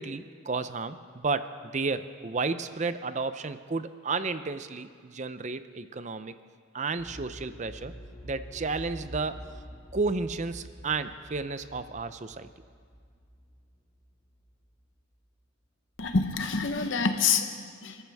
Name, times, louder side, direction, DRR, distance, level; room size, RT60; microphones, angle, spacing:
voice 1, 0.0-6.3 6.7-7.9 8.2-9.4 9.9-12.5, right 4 dB, 35° right, 12 dB, 0.6 m, -32 dB
sound 1, 7.0-14.7 15.0-15.1, equal, 20° left, 3.2 m, -47 dB
voice 2, 16.0-18.0, left 5 dB, 65° left, 6 dB, 1.0 m, -27 dB
29.5 x 14.0 x 3.5 m, 2.1 s
head